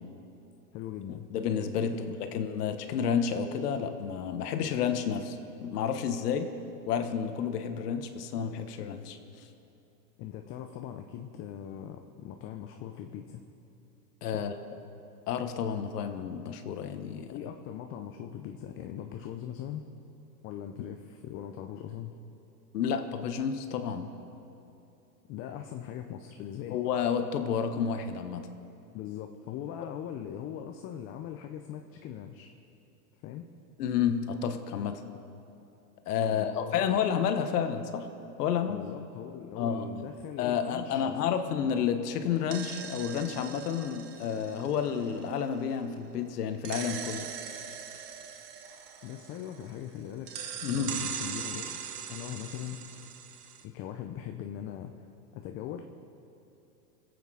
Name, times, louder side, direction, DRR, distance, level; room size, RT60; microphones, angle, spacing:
voice 1, 0.7-1.3 1.8-2.2 2.5-2.7 10.2-13.4 14.3-14.5 17.3-19.8 20.4-22.1 25.3-26.8 28.9-32.5 33.2-33.4 36.2-37.0 38.7-41.7 49.0-50.3 50.7-51.8 52.1-53.1 53.6-55.1 55.3-55.8, left 10 dB, 30° left, 5 dB, 0.6 m, -41 dB
voice 2, 1.3-5.4 5.6-6.5 6.9-9.5 14.2-14.5 15.3-17.3 22.7-24.1 26.7-28.5 33.8-35.0 36.1-38.1 38.4-38.8 39.5-39.9 40.4-47.3 50.6-51.0, left 7 dB, 70° left, 8 dB, 1.3 m, -30 dB
sound 1, 42.3-45.9 46.6-49.9 50.3-53.6, right 8 dB, 70° right, 1.4 m, -41 dB
22.0 x 8.4 x 4.9 m, 2.8 s
hypercardioid pair, 130°, 48 cm